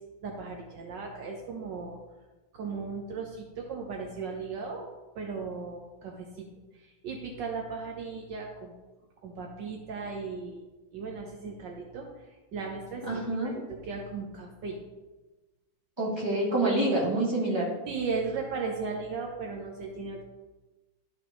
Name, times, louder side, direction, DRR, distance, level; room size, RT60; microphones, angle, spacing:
voice 1, 0.2-2.0 2.5-4.9 5.1-6.4 6.7-8.7 9.2-10.6 10.9-14.8 17.9-20.2, right 4 dB, 70° right, 1 dB, 1.4 m, -36 dB
voice 2, 13.1-13.5 16.0-17.7, right 1 dB, 15° right, -6 dB, 2.2 m, -27 dB
12.0 x 5.0 x 3.1 m, 1.2 s
omnidirectional pair, 2.1 m